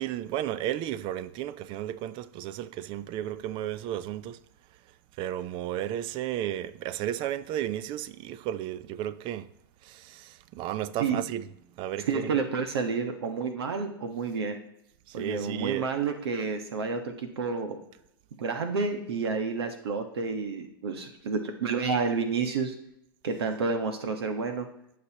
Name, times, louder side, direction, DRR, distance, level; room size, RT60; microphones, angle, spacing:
voice 1, 0.0-4.4 5.2-9.5 9.8-11.5 11.8-12.3 15.1-15.9, right 12 dB, 40° right, 0.6 m, -33 dB
voice 2, 12.0-14.6 15.1-17.8 18.4-22.7 23.2-24.7, right 5 dB, 80° right, 1.5 m, -30 dB
18.5 x 6.7 x 3.0 m
hypercardioid pair, 125°, 13 cm